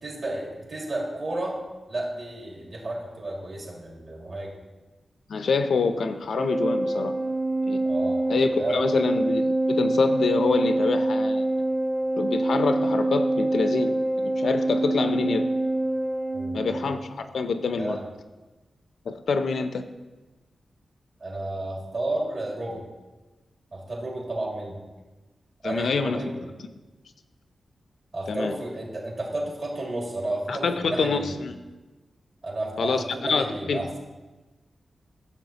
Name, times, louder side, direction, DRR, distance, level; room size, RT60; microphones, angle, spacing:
voice 1, 0.0-1.6 1.9-4.5 7.8-8.2 8.6-8.8 16.3-16.6 17.8-18.0 21.2-22.8 23.7-24.8 25.6-26.4 28.1-31.3 32.4-33.9, right 2 dB, 45° right, -3 dB, 2.2 m, -32 dB
voice 2, 5.3-7.1 7.7-7.8 8.3-11.5 12.2-15.5 16.5-18.0 19.0-19.8 25.6-26.3 28.3-28.5 30.5-31.5 32.8-33.8, left 4 dB, 75° left, 9 dB, 0.5 m, -26 dB
Organ, 6.3-17.1, right 2 dB, 70° right, 1.1 m, -25 dB
13.0 x 7.1 x 2.9 m, 1.2 s
wide cardioid pair, 170°, 0 cm